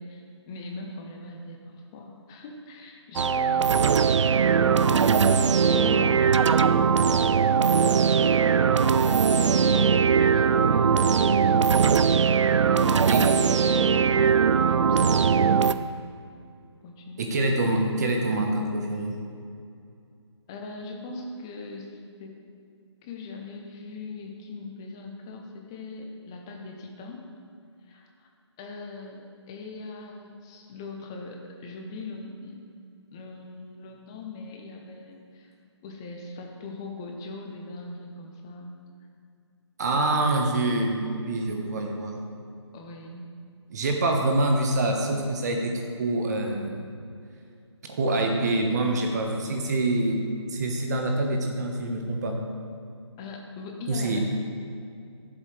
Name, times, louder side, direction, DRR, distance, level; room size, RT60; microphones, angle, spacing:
voice 1, 0.0-4.7 5.7-8.1 8.7-12.0 12.2-16.2 16.8-17.7 20.5-22.5 23.0-27.3 27.8-28.3 28.6-32.6 33.1-35.5 35.8-38.8 42.7-43.3 53.2-54.2, left 2 dB, 10° left, 2 dB, 0.4 m, -40 dB
sound 1, 3.2-15.7, right 6 dB, 80° right, 0.4 m, -20 dB
voice 2, 17.2-19.1 39.8-42.2 43.7-46.9 47.9-50.2 50.5-52.4 53.9-54.2, right 2 dB, 35° right, 2 dB, 1.1 m, -26 dB
12.5 x 7.5 x 3.3 m, 2.4 s
figure-of-eight pair, 160°, 15 cm